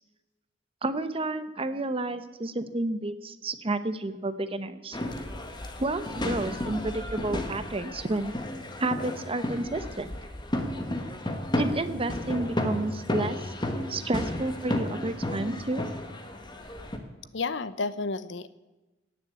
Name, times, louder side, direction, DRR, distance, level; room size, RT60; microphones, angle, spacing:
voice 1, 0.8-5.0 5.8-8.3 8.8-10.1 11.6-13.4 13.9-15.9, right 2 dB, 30° right, 12 dB, 0.8 m, -30 dB
sound 1, 4.9-17.0, left 1 dB, 25° left, 1.6 m, -33 dB
voice 2, 17.3-18.5, left 3 dB, 70° left, 15 dB, 0.8 m, -31 dB
17.5 x 7.0 x 8.4 m, 1.1 s
head